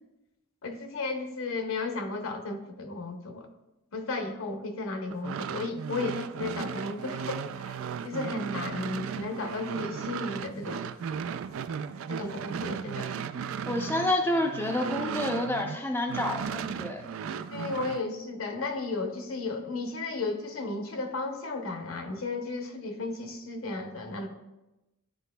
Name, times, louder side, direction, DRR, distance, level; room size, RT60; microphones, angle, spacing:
voice 1, 0.6-3.5 3.9-7.8 8.0-10.9 12.1-13.1 17.5-24.3, left 3 dB, 70° left, 5 dB, 0.8 m, -34 dB
sound 1, 5.1-15.8 16.1-18.0, right 7 dB, 70° right, 0.3 m, -36 dB
voice 2, 13.6-17.1, left 1 dB, 10° left, 1 dB, 0.5 m, -29 dB
11.0 x 4.0 x 2.2 m, 0.97 s
head